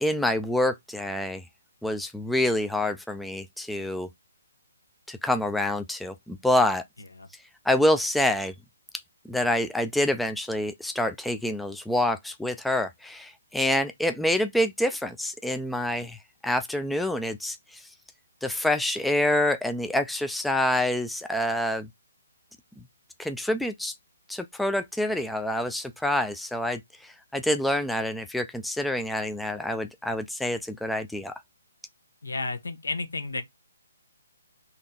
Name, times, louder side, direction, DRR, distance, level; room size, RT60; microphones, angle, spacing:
voice 1, 0.0-1.4 1.8-4.1 5.1-6.8 7.7-8.5 9.3-16.2 16.4-17.9 18.4-21.9 23.2-23.9 24.3-31.3, left 1 dB, ahead, 0.3 m, -27 dB
voice 2, 32.2-33.4, left 3 dB, 75° left, 0.9 m, -32 dB
4.1 x 3.0 x 3.7 m
figure-of-eight pair, 140°, 0 cm